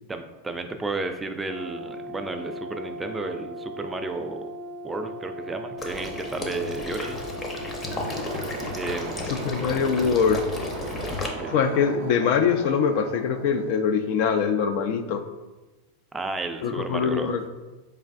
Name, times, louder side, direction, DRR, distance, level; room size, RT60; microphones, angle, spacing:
voice 1, 0.1-4.5 4.8-7.2 8.7-9.3 11.4-11.6 16.1-17.3, right 3 dB, 15° right, 7 dB, 0.3 m, -32 dB
Brass instrument, 1.4-9.2, equal, 80° left, 1.4 m, -38 dB
Water / Liquid, 5.8-11.3, left 2 dB, 25° left, 0.7 m, -33 dB
sound 1, 7.7-14.3, right 3 dB, 70° right, 0.6 m, -38 dB
voice 2, 9.3-10.4 11.5-15.2 16.6-17.4, left 6 dB, 60° left, 8 dB, 0.4 m, -23 dB
4.5 x 3.3 x 2.5 m, 1.2 s
hypercardioid pair, 115°, 0 cm